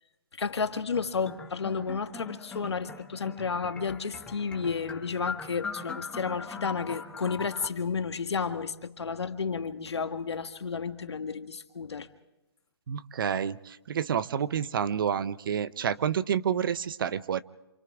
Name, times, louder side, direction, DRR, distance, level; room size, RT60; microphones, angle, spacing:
voice 1, 0.4-12.1, left 5 dB, 80° left, 8 dB, 1.7 m, -32 dB
sound 1, 0.9-7.7, left 4 dB, 5° left, 1.3 m, -41 dB
voice 2, 12.9-17.4, right 8 dB, 55° right, 16 dB, 0.8 m, -29 dB
28.0 x 28.0 x 3.6 m, 1.0 s
hypercardioid pair, 150°, 14 cm